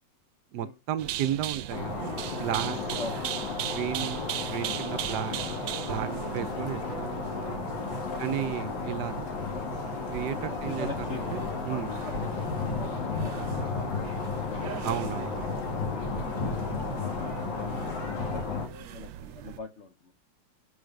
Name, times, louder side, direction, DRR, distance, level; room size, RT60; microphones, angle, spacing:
voice 1, 0.5-2.1 2.4-3.0 3.7-4.2 4.5-5.4 5.8-7.2 8.2-9.1 10.1-11.9 14.8-15.6, right 11 dB, 70° right, 1.1 m, -33 dB
sound 1, 1.0-19.6, right 11 dB, 90° right, 1.3 m, -39 dB
sound 2, 1.7-18.7, left 4 dB, 90° left, 2.5 m, -33 dB
voice 2, 10.5-12.4 12.7-14.3 14.5-14.8 15.9-20.1, left 3 dB, 60° left, 0.7 m, -43 dB
6.3 x 4.9 x 5.1 m
omnidirectional pair, 2.0 m